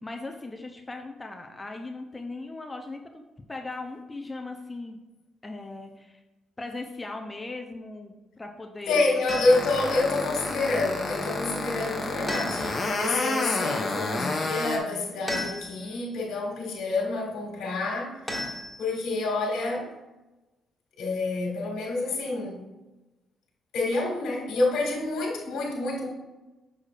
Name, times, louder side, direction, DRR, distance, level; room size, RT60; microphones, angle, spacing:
voice 1, 0.0-3.2 3.5-5.0 5.4-6.2 6.6-9.2 12.2-12.6, left 2 dB, 20° left, 3 dB, 0.6 m, -38 dB
voice 2, 8.9-18.2 18.8-19.9 21.0-22.6 23.7-26.1, left 2 dB, 80° left, -3 dB, 1.9 m, -28 dB
sound 1, 9.3-9.8 12.3-13.0 15.3-16.0 18.3-19.2, left 1 dB, ahead, 1.8 m, -34 dB
sound 2, 9.5-14.8, left 2 dB, 35° left, 1.0 m, -29 dB
6.4 x 6.2 x 2.5 m, 1.1 s
cardioid pair, 90°, 0 cm